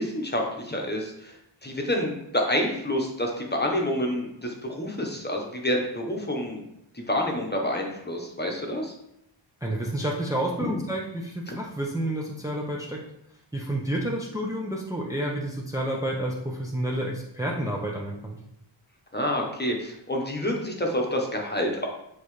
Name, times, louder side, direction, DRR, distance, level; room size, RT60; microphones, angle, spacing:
voice 1, 0.0-1.4 1.6-6.6 6.9-8.9 10.6-10.8 11.5-11.6 19.1-21.9, left 1 dB, 20° left, 0 dB, 1.1 m, -28 dB
voice 2, 9.6-13.0 13.5-18.4, right 1 dB, 5° right, -2 dB, 0.7 m, -30 dB
7.8 x 4.0 x 3.2 m, 0.79 s
wide cardioid pair, 120°, 50 cm